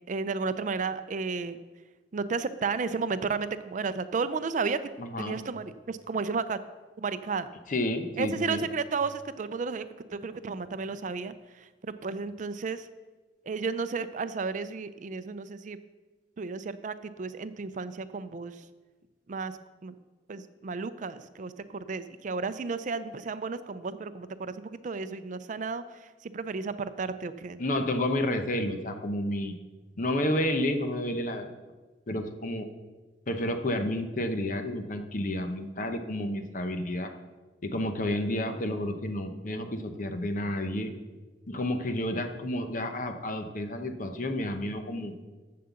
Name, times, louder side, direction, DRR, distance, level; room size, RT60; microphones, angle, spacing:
voice 1, 0.1-1.6 2.1-4.8 5.2-6.6 7.0-7.5 8.2-9.8 10.1-11.3 11.8-12.9 13.5-15.8 16.4-18.5 19.3-19.5 19.8-19.9 20.3-27.6, right 4 dB, 45° right, 12 dB, 0.4 m, -33 dB
voice 2, 5.0-5.4 7.7-8.6 27.6-29.5 30.0-31.5 32.1-32.7 33.3-37.1 37.6-40.9 41.5-45.1, left 1 dB, 50° left, 6 dB, 0.9 m, -30 dB
7.6 x 7.5 x 7.0 m, 1.3 s
head